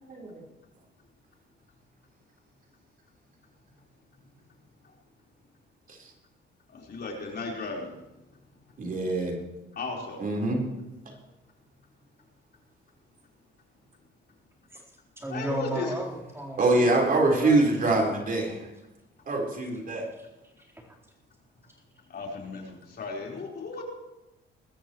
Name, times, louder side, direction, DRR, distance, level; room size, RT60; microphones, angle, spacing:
voice 1, 6.7-7.9 9.8-10.2 15.3-15.9 22.1-23.8, left 3 dB, 55° left, -1 dB, 4.4 m, -35 dB
voice 2, 8.8-9.4 10.2-10.6 16.6-18.6 19.3-20.1, right 2 dB, 45° right, -2 dB, 4.3 m, -24 dB
voice 3, 15.2-17.7 20.2-20.3 20.6-20.9, right 1 dB, 10° right, -3 dB, 4.1 m, -35 dB
21.0 x 14.0 x 3.2 m, 0.99 s
cardioid pair, 90°, 20 cm